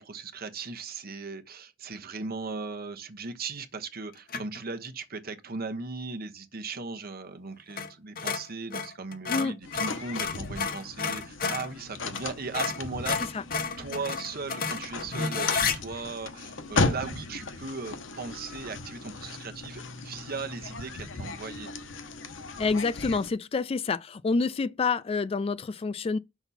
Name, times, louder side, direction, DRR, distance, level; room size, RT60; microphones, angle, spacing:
voice 1, 0.0-13.4 13.8-21.7, right 4 dB, 50° right, 1.0 m, -38 dB
sound 1, 4.3-4.6 7.7-11.7 12.1-12.3 12.5-15.8, left 5 dB, 50° left, 1.0 m, -31 dB
sound 2, 9.6-23.3, left 3 dB, 70° left, 1.0 m, -36 dB
voice 2, 22.6-26.2, left 4 dB, 30° left, 0.3 m, -28 dB
6.8 x 6.1 x 4.2 m
head